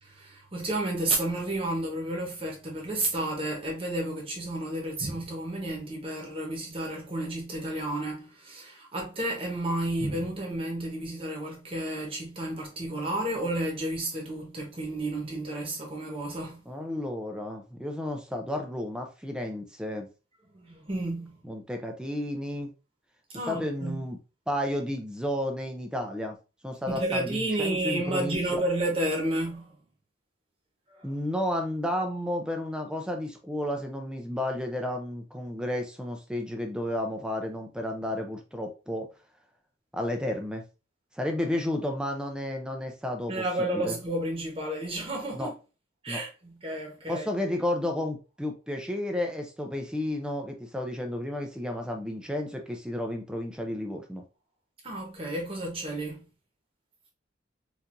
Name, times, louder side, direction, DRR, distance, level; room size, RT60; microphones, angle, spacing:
voice 1, 0.0-16.6 20.5-21.4 23.3-24.0 26.9-29.8 30.9-31.1 43.3-45.5 46.0-47.3 54.8-56.2, right 1 dB, 30° right, 1.0 m, -31 dB
voice 2, 16.7-20.1 21.4-22.7 23.5-24.2 24.5-26.4 26.6-28.6 31.0-39.1 39.9-40.6 41.1-44.0 45.3-45.5 46.1-46.2 47.1-54.2, left 1 dB, 5° right, 0.5 m, -32 dB
4.4 x 2.6 x 2.5 m
head